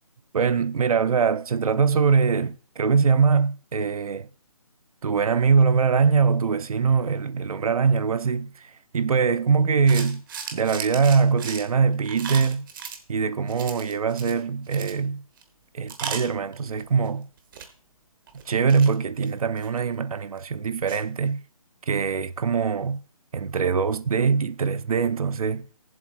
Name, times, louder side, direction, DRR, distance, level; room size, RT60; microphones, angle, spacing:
voice 1, 0.3-4.3 5.0-8.7 8.9-10.2 10.5-12.7 13.1-15.2 15.7-17.3 18.5-21.4 21.9-23.0 23.3-25.7, right 5 dB, 75° right, 0.6 m, -22 dB
sound 1, 9.9-13.0 13.5-14.4 14.7-15.0 15.4-15.5 15.9-17.1 17.4-17.7 18.3-20.0 20.4-20.5 20.9-21.0, right 6 dB, 35° right, 1.1 m, -36 dB
21.0 x 7.4 x 2.5 m
hypercardioid pair, 155°, 18 cm